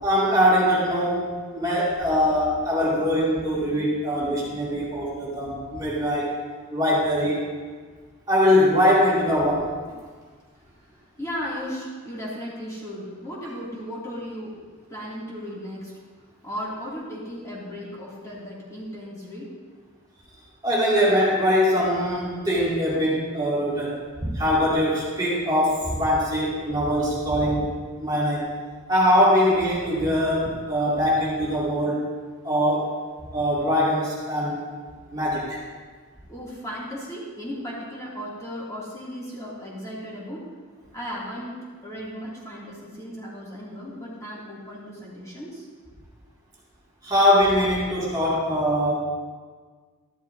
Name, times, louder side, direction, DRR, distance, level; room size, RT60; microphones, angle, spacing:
voice 1, 0.0-6.3 6.7-7.5 8.3-9.7 20.6-27.7 28.0-28.5 28.9-32.1 32.4-32.9 33.3-34.7 35.1-35.6 47.0-48.9, equal, 20° right, -8 dB, 2.4 m, -22 dB
voice 2, 10.9-14.6 14.9-19.5 36.3-40.4 40.9-45.7, equal, 15° left, -8 dB, 2.5 m, -36 dB
13.5 x 12.0 x 2.7 m, 1.5 s
head